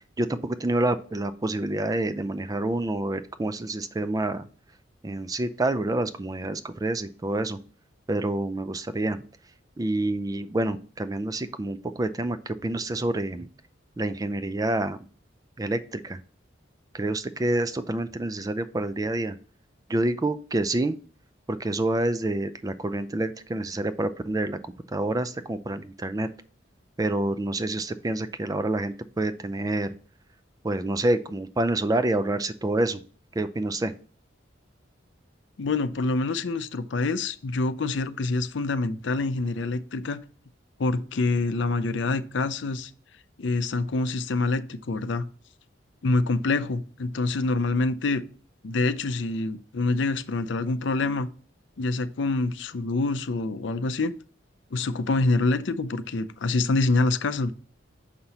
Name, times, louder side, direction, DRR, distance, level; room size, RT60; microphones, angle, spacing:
voice 1, 0.2-4.5 5.0-7.6 8.1-9.2 9.8-13.5 14.0-15.0 15.6-16.2 16.9-19.4 19.9-21.0 21.5-26.3 27.0-29.9 30.6-33.0 33.4-33.9, right 2 dB, 20° right, 0.4 m, -27 dB
voice 2, 35.6-40.2 40.8-42.9 43.4-45.3 46.0-48.2 48.6-51.3 51.8-54.1 54.7-57.5, left 3 dB, 70° left, 0.5 m, -26 dB
6.6 x 5.6 x 2.9 m
head